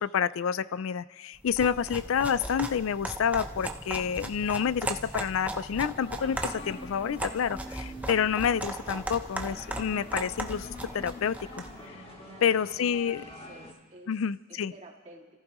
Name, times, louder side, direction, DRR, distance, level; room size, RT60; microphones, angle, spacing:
voice 1, 0.0-11.6 12.4-13.2 14.1-14.7, left 7 dB, 85° left, 18 dB, 0.4 m, -28 dB
sound 1, 1.4-11.8, right 1 dB, 5° right, 0.7 m, -37 dB
Singing / Musical instrument, 1.5-10.6, left 1 dB, 10° left, 6.1 m, -56 dB
sound 2, 5.9-13.7, left 1 dB, 30° left, 1.9 m, -45 dB
voice 2, 12.2-14.2 14.5-15.3, right 1 dB, 35° right, -2 dB, 2.4 m, -51 dB
29.5 x 14.5 x 3.1 m, 1.3 s
head